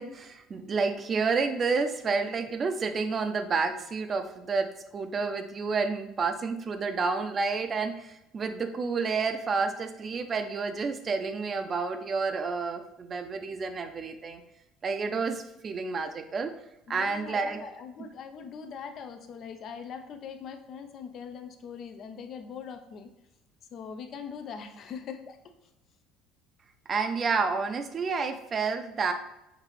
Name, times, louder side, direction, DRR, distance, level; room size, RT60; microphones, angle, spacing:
voice 1, 0.0-14.4 14.8-16.5 16.9-17.7 26.9-29.1, right 4 dB, 35° right, 7 dB, 0.6 m, -30 dB
voice 2, 16.9-23.1 23.7-25.4, left 6 dB, 55° left, 8 dB, 0.6 m, -41 dB
5.9 x 2.7 x 3.2 m, 0.90 s
supercardioid pair, 95°, 0 cm